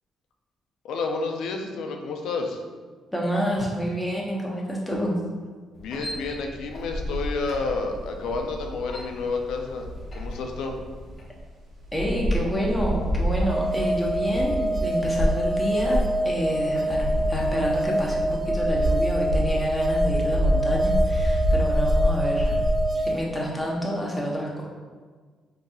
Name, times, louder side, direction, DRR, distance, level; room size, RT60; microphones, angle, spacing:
voice 1, 0.8-2.6 5.8-10.8, left 3 dB, 80° left, 3 dB, 0.4 m, -30 dB
voice 2, 3.1-5.1 11.9-22.6 22.9-24.7, equal, 5° left, -3 dB, 0.8 m, -28 dB
sound 1, 5.7-11.3, equal, 45° left, 0.8 m, -41 dB
sound 2, 6.9-10.6 11.1-11.2 11.4-11.5 11.8-22.8, equal, 80° right, 1.2 m, -27 dB
sound 3, 13.5-23.2, right 1 dB, 40° right, 0.3 m, -26 dB
3.9 x 2.7 x 2.3 m, 1.5 s
cardioid pair, 90°, 0 cm